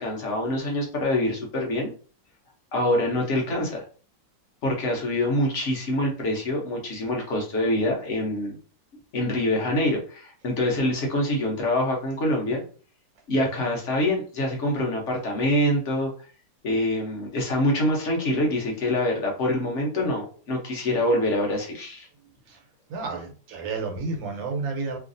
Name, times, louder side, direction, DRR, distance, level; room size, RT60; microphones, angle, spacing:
voice 1, 0.0-1.9 2.7-3.8 4.6-8.6 9.1-12.6 13.3-16.1 16.6-22.1, left 1 dB, 55° left, 0 dB, 0.9 m, -25 dB
voice 2, 22.9-25.0, right 4 dB, 80° right, 2 dB, 1.5 m, -31 dB
3.1 x 2.5 x 2.5 m, 0.40 s
omnidirectional pair, 2.0 m